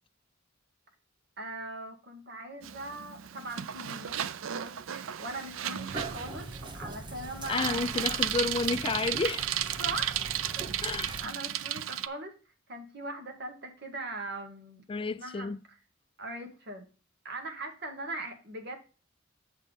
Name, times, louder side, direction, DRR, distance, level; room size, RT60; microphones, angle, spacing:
voice 1, 1.4-4.2 4.5-8.1 9.8-10.1 11.2-12.3 12.7-14.8 15.2-15.5 16.2-16.8 17.2-18.8, right 2 dB, 55° right, 2.0 m, -40 dB
Bicycle, 2.6-12.1, right 11 dB, 80° right, 0.4 m, -34 dB
sound 1, 5.9-11.2, right 2 dB, 25° right, 0.9 m, -42 dB
voice 2, 7.5-9.5 10.8-11.1 14.9-15.6, left 4 dB, 25° left, 0.4 m, -31 dB
7.2 x 4.4 x 5.1 m
head